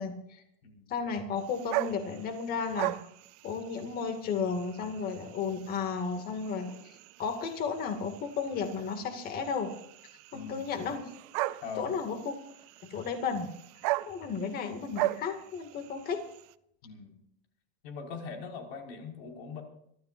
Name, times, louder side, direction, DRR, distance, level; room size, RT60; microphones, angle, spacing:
voice 1, 0.0-0.4 0.9-3.0 3.4-9.7 10.3-11.0 11.8-12.3 12.9-13.5 14.1-16.3, left 5 dB, 30° left, 6 dB, 2.3 m, -33 dB
voice 2, 0.6-0.9 10.3-10.7 11.6-12.0 16.8-17.2 17.8-19.6, left 5 dB, 65° left, 2 dB, 5.4 m, -41 dB
sound 1, 1.4-16.5, right 19 dB, 40° right, 0.5 m, -39 dB
26.0 x 13.5 x 2.6 m, 0.74 s
supercardioid pair, 160°, 33 cm